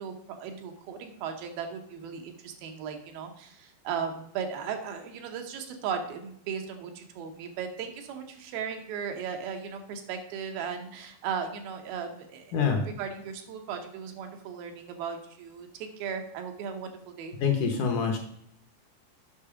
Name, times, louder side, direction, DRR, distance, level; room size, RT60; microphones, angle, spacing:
voice 1, 0.0-17.3, right 6 dB, 80° right, 5 dB, 2.8 m, -37 dB
voice 2, 12.5-12.8 17.4-18.2, left 6 dB, 65° left, 3 dB, 2.1 m, -25 dB
8.6 x 6.1 x 4.9 m, 0.71 s
omnidirectional pair, 4.3 m